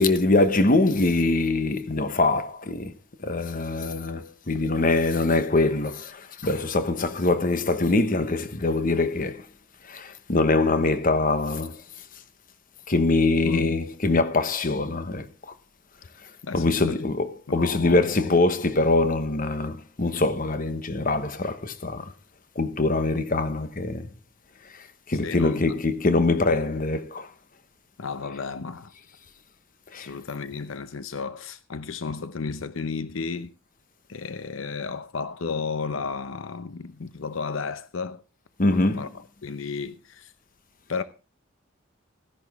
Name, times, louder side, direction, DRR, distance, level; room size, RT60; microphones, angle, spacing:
voice 1, 0.0-2.9 3.2-9.5 9.8-11.8 12.9-15.5 16.2-22.1 22.5-24.1 24.7-27.3 29.9-30.1 38.6-39.1, left 2 dB, 45° left, 1.1 m, -23 dB
voice 2, 13.5-13.8 16.4-17.0 17.5-18.3 25.2-25.6 28.0-28.9 29.9-33.5 34.1-38.2 38.7-39.1 39.4-40.3 40.9-41.0, left 4 dB, 80° left, 0.7 m, -33 dB
15.5 x 11.0 x 3.6 m
head